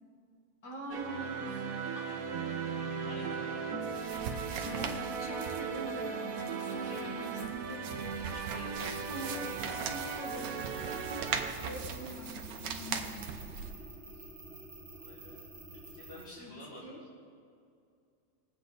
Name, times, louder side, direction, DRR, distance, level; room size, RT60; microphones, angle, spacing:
voice 1, 0.6-1.7 1.9-2.0 4.6-8.3 8.8-11.1 11.6-13.5 16.4-16.5 16.8-17.0, equal, 70° left, -1 dB, 2.4 m, -44 dB
sound 1, 0.9-11.5, right 6 dB, 60° right, 1.2 m, -37 dB
voice 2, 3.0-3.6 6.8-7.6 8.3-9.0 15.0-15.4 15.7-17.0, left 1 dB, 35° left, -7 dB, 1.9 m, -50 dB
sound 2, 3.8-13.7, right 6 dB, 75° right, 1.4 m, -41 dB
sound 3, 8.8-16.2, right 2 dB, 40° right, 2.1 m, -49 dB
20.0 x 8.3 x 4.0 m, 2.3 s
omnidirectional pair, 1.9 m